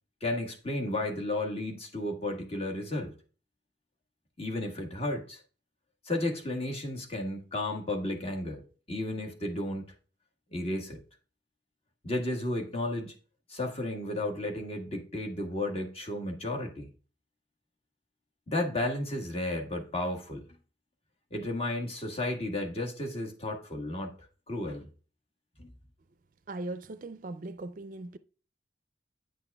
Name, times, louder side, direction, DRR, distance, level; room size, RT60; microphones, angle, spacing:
voice 1, 0.2-3.1 4.4-5.4 6.0-9.9 10.5-11.0 12.0-13.1 13.5-16.9 18.5-20.5 21.3-24.1 24.5-24.9 25.6-25.7, left 1 dB, 35° left, 1.4 m, -33 dB
voice 2, 26.5-28.2, right 2 dB, 50° right, 0.4 m, -39 dB
9.2 x 5.9 x 2.3 m
head